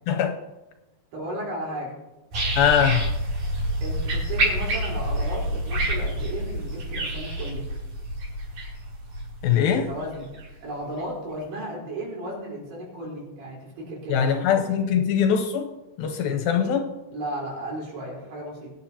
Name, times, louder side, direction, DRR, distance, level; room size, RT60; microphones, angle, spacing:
voice 1, 1.1-1.9 3.8-7.6 9.9-14.8 17.1-18.7, right 1 dB, 80° right, -4 dB, 6.2 m, -34 dB
Birds and Insects at Millerton Lake, 2.3-10.5 11.0-11.1, right 1 dB, 55° right, 4.3 m, -28 dB
voice 2, 2.6-3.0 9.4-9.9 14.1-15.7 16.0-16.9, left 8 dB, 75° left, 5 dB, 2.3 m, -22 dB
20.5 x 9.5 x 2.8 m, 1.0 s
omnidirectional pair, 4.7 m